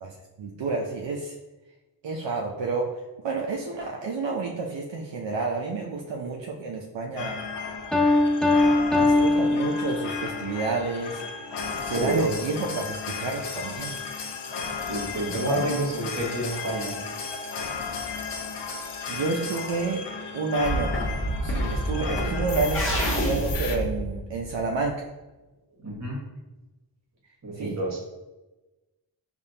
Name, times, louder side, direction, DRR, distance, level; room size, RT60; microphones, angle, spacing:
voice 1, 0.0-1.3 2.0-2.9 3.2-7.4 8.9-11.2 11.8-13.9 15.3-15.6 19.1-20.0 20.3-20.9 21.4-25.0 27.5-27.8, right 3 dB, 70° right, -1 dB, 0.6 m, -30 dB
sound 1, 7.2-23.8, left 5 dB, 70° left, 0.6 m, -34 dB
Piano, 7.9-10.4, left 2 dB, ahead, 0.5 m, -21 dB
voice 2, 11.6-12.3 14.9-16.9 22.0-22.3 25.8-26.2 27.4-28.0, right 1 dB, 35° right, -2 dB, 1.3 m, -29 dB
sound 2, 20.6-24.8, right 1 dB, 30° left, 1.1 m, -28 dB
5.0 x 2.4 x 2.8 m, 1.1 s
wide cardioid pair, 75°, 45 cm